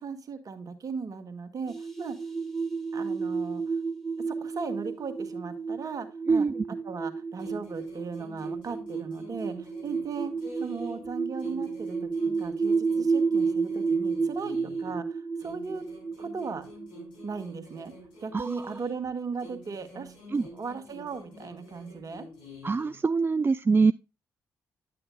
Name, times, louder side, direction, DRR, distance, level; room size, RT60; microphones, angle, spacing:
voice 1, 0.0-2.2 2.9-3.6 4.3-6.5 6.9-10.3 10.6-12.1 12.4-15.8 16.2-16.6 17.2-17.9 18.2-20.2 20.5-22.3, right 5 dB, 50° right, 1.7 m, -37 dB
sound 1, 1.7-18.0, right 4 dB, ahead, 2.0 m, -31 dB
sound 2, 7.4-11.1 11.4-15.0 15.4-19.1 19.4-23.0, left 1 dB, 80° left, 3.5 m, -47 dB
voice 2, 18.3-18.7 20.3-20.5 22.6-23.9, right 4 dB, 30° right, 0.4 m, -24 dB
10.5 x 7.7 x 2.4 m
hypercardioid pair, 40°, 8 cm